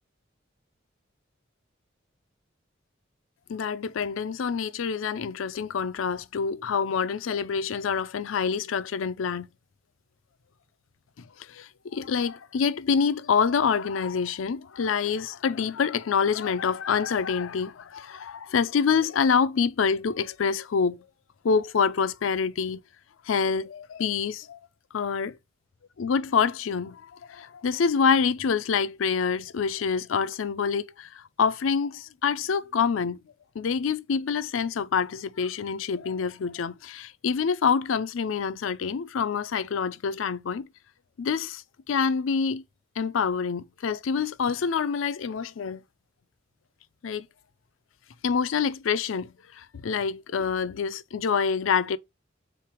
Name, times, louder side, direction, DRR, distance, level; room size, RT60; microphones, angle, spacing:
voice 1, 3.5-9.5 11.4-21.1 21.4-22.8 23.2-24.6 24.9-25.4 26.0-33.2 33.5-40.7 41.2-42.6 43.0-45.8 47.0-47.3 48.2-52.0, left 6 dB, 85° left, 0.4 m, -26 dB
3.7 x 3.3 x 4.3 m
head